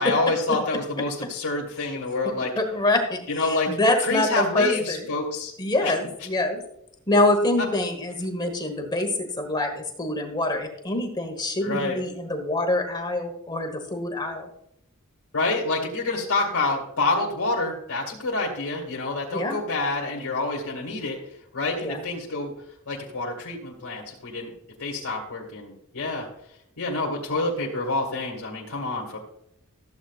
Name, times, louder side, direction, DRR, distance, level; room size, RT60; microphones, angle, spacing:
voice 1, 0.0-2.5 3.3-5.5 5.8-5.9 11.6-12.0 15.3-21.2 21.5-22.5 22.9-24.5 24.8-26.3 26.8-29.2, left 3 dB, 70° left, -3 dB, 2.1 m, -27 dB
voice 2, 2.6-5.0 5.6-6.6 7.1-14.5 19.3-19.6 21.8-22.0, left 2 dB, 20° left, 3 dB, 1.3 m, -25 dB
14.5 x 8.1 x 2.4 m, 0.75 s
head